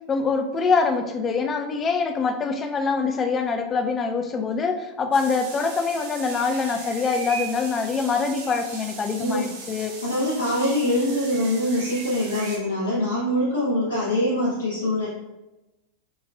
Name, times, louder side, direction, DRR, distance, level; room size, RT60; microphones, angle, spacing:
voice 1, 0.1-9.9, left 4 dB, 25° left, 5 dB, 0.4 m, -24 dB
sound 1, 5.1-12.6, right 4 dB, 60° right, 0.7 m, -38 dB
voice 2, 10.0-15.1, left 1 dB, 85° left, -7 dB, 0.6 m, -24 dB
4.2 x 2.3 x 2.3 m, 1.0 s
figure-of-eight pair, 90°, 0 cm